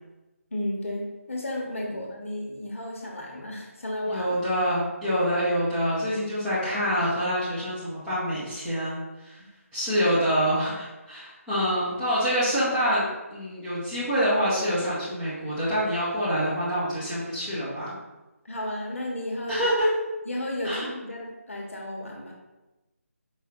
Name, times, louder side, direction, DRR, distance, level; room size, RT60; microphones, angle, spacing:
voice 1, 0.5-4.3 18.4-19.6 20.3-22.3, left 1 dB, 60° left, 0 dB, 1.0 m, -33 dB
voice 2, 4.1-9.4 9.7-17.9 19.5-19.9 20.6-20.9, equal, 5° right, -12 dB, 1.1 m, -26 dB
4.9 x 3.4 x 2.9 m, 1.1 s
figure-of-eight pair, 160°, 8 cm